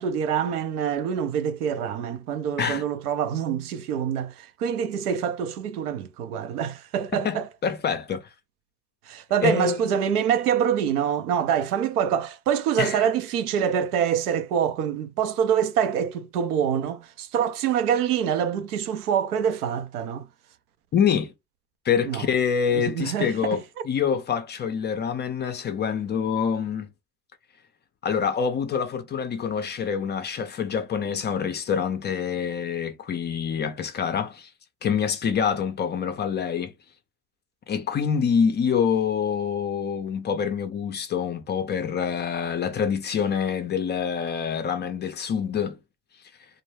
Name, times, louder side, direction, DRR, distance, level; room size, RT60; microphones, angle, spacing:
voice 1, 0.0-7.5 9.1-20.2 22.0-22.3 22.7-23.6, right 8 dB, 85° right, 0.6 m, -25 dB
voice 2, 7.1-8.3 9.4-9.8 12.8-13.0 20.9-21.3 21.9-26.9 28.0-34.5 34.8-36.7 37.7-45.8, left 7 dB, 25° left, 0.4 m, -26 dB
2.1 x 2.0 x 3.1 m
hypercardioid pair, 75°, 45 cm